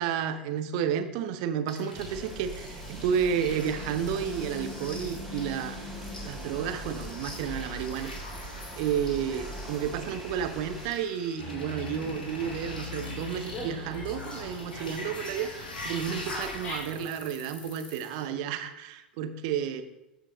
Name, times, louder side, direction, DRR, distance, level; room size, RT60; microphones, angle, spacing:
voice 1, 0.0-5.8 6.2-8.5 8.8-19.8, right 8 dB, 55° right, 9 dB, 0.9 m, -31 dB
sound 1, 1.7-18.3, left 1 dB, 80° left, 2.0 m, -45 dB
sound 2, 1.9-10.9, equal, 5° left, 3.4 m, -40 dB
Dog, 11.4-17.0, left 2 dB, 30° left, 2.7 m, -40 dB
13.5 x 5.1 x 3.8 m, 0.89 s
figure-of-eight pair, 80°, 5 cm